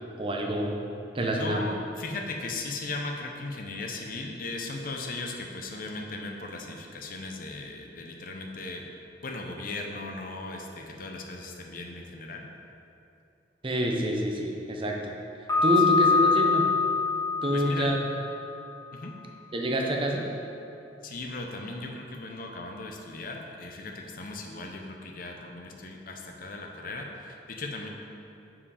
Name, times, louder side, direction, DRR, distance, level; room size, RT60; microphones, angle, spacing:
voice 1, 0.2-0.7 1.1-1.6 13.6-15.1 15.6-16.7 17.4-18.0 19.5-20.3, equal, 30° right, 0 dB, 0.6 m, -27 dB
voice 2, 1.3-12.5 17.5-17.9 18.9-19.1 21.0-27.9, left 2 dB, 50° left, 2 dB, 0.6 m, -37 dB
Piano, 15.5-18.4, left 4 dB, 20° left, 1.6 m, -24 dB
5.6 x 4.8 x 4.8 m, 2.7 s
head